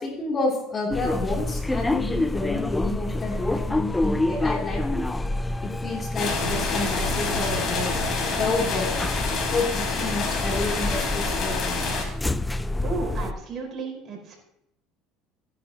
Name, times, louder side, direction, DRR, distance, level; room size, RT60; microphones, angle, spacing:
voice 1, 0.0-5.0 5.6-7.9 8.4-9.0 9.5-11.9, left 3 dB, 30° left, 0 dB, 3.1 m, -29 dB
sound 1, 0.9-13.3, left 2 dB, 10° left, 0.5 m, -28 dB
Rain brings hail, 6.2-12.0, left 3 dB, 45° left, 4.2 m, -27 dB
voice 2, 12.8-14.4, right 4 dB, 40° right, 1 dB, 4.8 m, -33 dB
15.0 x 10.0 x 2.9 m, 0.80 s
supercardioid pair, 115°, 0 cm